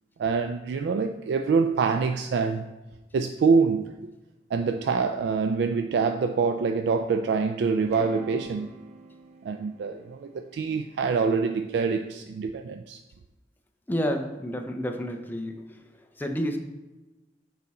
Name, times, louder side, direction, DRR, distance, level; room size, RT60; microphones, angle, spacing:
voice 1, 0.2-2.7 3.1-4.1 4.5-8.8 9.4-13.0, right 5 dB, 65° right, 0.3 m, -25 dB
sound 1, 7.8-11.9, right 4 dB, 40° right, 0.6 m, -47 dB
voice 2, 13.9-15.8 16.2-16.6, equal, 10° left, 0.5 m, -30 dB
6.7 x 4.1 x 4.2 m
head